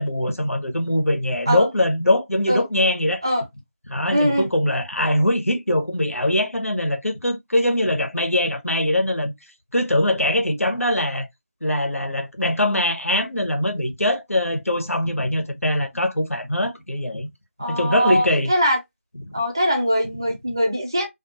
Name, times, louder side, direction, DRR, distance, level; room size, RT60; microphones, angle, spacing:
voice 1, 0.0-3.2 3.9-9.3 9.7-11.3 11.6-17.3 17.7-18.5 19.3-19.4, left 1 dB, 80° left, 0.9 m, -22 dB
voice 2, 4.1-4.5 17.6-18.8 19.3-21.1, equal, 20° right, 0.4 m, -21 dB
2.5 x 2.3 x 2.6 m
figure-of-eight pair, 165°, 7 cm